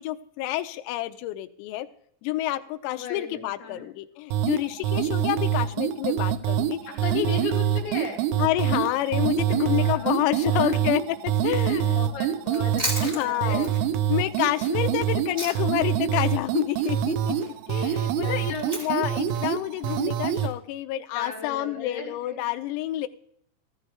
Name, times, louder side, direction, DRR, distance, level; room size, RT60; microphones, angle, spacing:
voice 1, 0.0-1.9 2.2-6.8 7.2-7.3 8.4-11.2 11.4-12.0 13.0-13.7 14.1-23.1, left 15 dB, 90° left, 8 dB, 3.4 m, -28 dB
voice 2, 2.9-3.8 6.9-8.2 9.5-10.8 11.8-13.7 17.8-18.7 21.1-22.4, left 4 dB, 65° left, 0 dB, 4.3 m, -36 dB
sound 1, 4.3-20.5, right 10 dB, 85° right, 3.5 m, -26 dB
Chewing mastication, 12.4-15.9 16.1-20.5, right 1 dB, 10° right, 1.9 m, -36 dB
14.5 x 14.5 x 3.4 m, 0.65 s
omnidirectional pair, 6.0 m